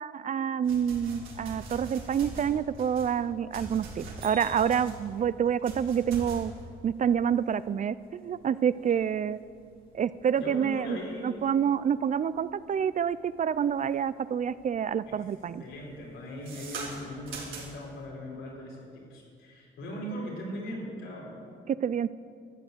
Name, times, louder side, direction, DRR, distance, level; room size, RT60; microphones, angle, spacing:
voice 1, 0.0-6.5 6.8-9.4 9.9-11.0 11.2-15.6 21.7-22.1, right 8 dB, 40° right, 16 dB, 0.4 m, -28 dB
sound 1, 0.6-13.9 14.4-14.8 15.0-18.0, right 3 dB, 85° right, 3.4 m, -43 dB
voice 2, 10.4-11.5 15.1-15.2 15.6-21.3, equal, 85° left, -3 dB, 4.6 m, -39 dB
13.0 x 9.2 x 8.1 m, 2.3 s
cardioid pair, 90°, 20 cm